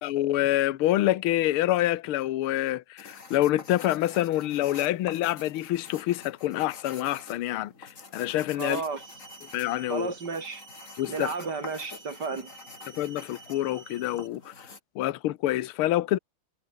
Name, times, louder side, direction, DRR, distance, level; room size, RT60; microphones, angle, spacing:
voice 1, 0.0-8.8 9.5-10.1 11.0-11.3 13.0-14.7 14.9-16.2, left 14 dB, 75° left, 1.7 m, -27 dB
sound 1, 3.0-14.8, left 4 dB, 35° left, 3.1 m, -47 dB
voice 2, 8.6-9.0 9.9-10.6 11.1-12.5, right 4 dB, 50° right, 3.6 m, -32 dB
sound 2, 8.8-14.3, right 5 dB, 80° right, 4.8 m, -51 dB
omnidirectional pair, 2.4 m